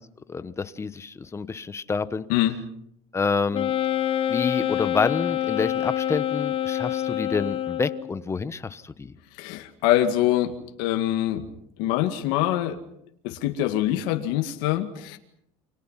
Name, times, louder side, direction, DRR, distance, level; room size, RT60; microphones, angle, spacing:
voice 1, 0.3-2.2 3.1-3.7 4.3-9.1, left 5 dB, 20° left, 1.1 m, -28 dB
Wind instrument woodwind instrument, 3.5-8.2, left 11 dB, 40° left, 1.3 m, -26 dB
voice 2, 9.4-11.5 11.8-12.8 13.2-15.2, left 13 dB, 80° left, 2.2 m, -24 dB
28.5 x 26.0 x 5.8 m
cardioid pair, 125°, 14 cm